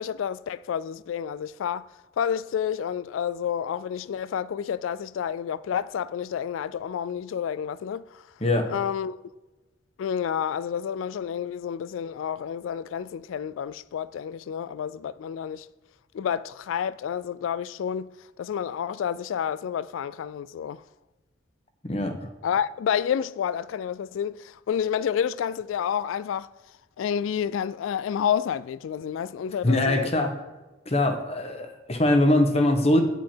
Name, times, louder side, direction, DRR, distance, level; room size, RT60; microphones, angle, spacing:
voice 1, 0.0-1.9 2.2-8.2 8.7-9.2 10.0-15.7 16.1-18.1 18.4-20.8 22.4-26.5 27.0-30.3, left 8 dB, 85° left, 0.3 m, -29 dB
voice 2, 21.8-22.1 29.6-30.3 30.9-33.0, left 1 dB, 30° left, 1.1 m, -22 dB
9.4 x 7.5 x 4.4 m
head